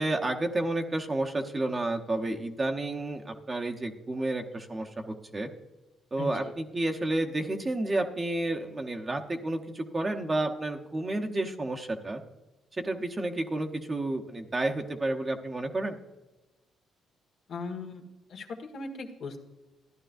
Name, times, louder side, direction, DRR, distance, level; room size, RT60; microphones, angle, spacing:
voice 1, 0.0-5.5 6.1-12.2 12.8-16.0, right 2 dB, 25° right, 3 dB, 1.0 m, -31 dB
voice 2, 6.2-6.5 17.5-18.0 18.3-19.4, left 3 dB, 65° left, 3 dB, 1.5 m, -38 dB
14.0 x 11.0 x 2.6 m, 1.1 s
cardioid pair, 90°, 0 cm